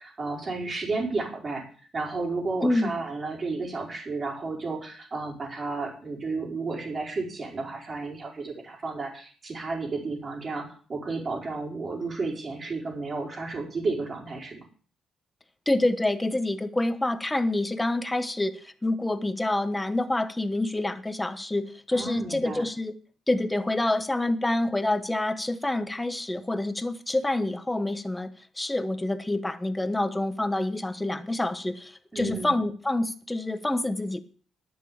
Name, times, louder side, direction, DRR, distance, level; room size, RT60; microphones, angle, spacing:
voice 1, 0.0-1.6 1.9-14.6 21.9-22.6 32.1-32.6, right 3 dB, 35° right, 4.7 m, -32 dB
voice 2, 2.6-2.9 15.7-22.9 23.3-28.3 28.6-34.2, left 2 dB, 10° left, 1.2 m, -27 dB
11.0 x 6.9 x 8.7 m
cardioid pair, 90°, 0 cm